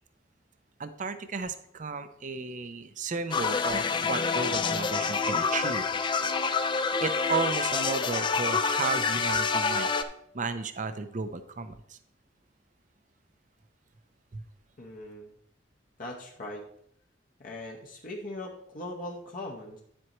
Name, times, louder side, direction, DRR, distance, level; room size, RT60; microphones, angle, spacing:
voice 1, 0.8-5.8 6.7-9.9 10.3-12.0 14.3-14.4, right 4 dB, 45° right, 10 dB, 0.6 m, -34 dB
sound 1, 3.3-10.0, left 5 dB, 25° left, 0.4 m, -27 dB
voice 2, 14.8-15.3 16.0-16.6 17.4-19.8, left 1 dB, 50° left, -1 dB, 1.0 m, -40 dB
9.7 x 7.7 x 3.0 m, 0.71 s
head